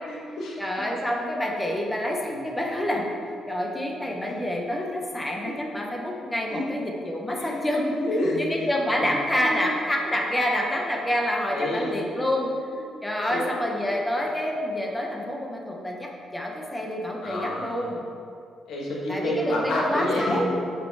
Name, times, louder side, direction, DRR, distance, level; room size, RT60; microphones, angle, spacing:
voice 1, 0.0-0.9 4.3-4.4 5.4-5.6 6.5-6.7 7.3-7.6 7.9-8.7 9.0-9.6 11.5-12.1 12.7-12.8 13.3-13.4 13.9-14.0 17.2-18.0 18.7-20.6, left 1 dB, 70° left, -3 dB, 1.7 m, -29 dB
voice 2, 0.6-3.1 3.5-7.9 8.4-12.5 13.0-18.0 19.1-20.5, left 1 dB, 10° left, 0 dB, 1.1 m, -27 dB
8.2 x 5.1 x 4.8 m, 2.4 s
cardioid pair, 130°, 0 cm